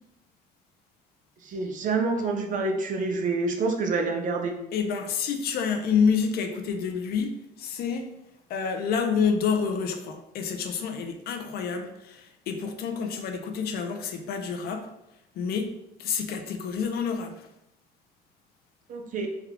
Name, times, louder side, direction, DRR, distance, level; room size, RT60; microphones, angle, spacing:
voice 1, 1.4-4.5 18.9-19.3, right 3 dB, 50° right, 4 dB, 0.5 m, -27 dB
voice 2, 4.7-8.1 8.5-14.9 15.4-15.7 16.0-17.5, left 6 dB, 65° left, 6 dB, 0.5 m, -28 dB
3.5 x 2.2 x 3.5 m, 0.84 s
cardioid pair, 110°, 17 cm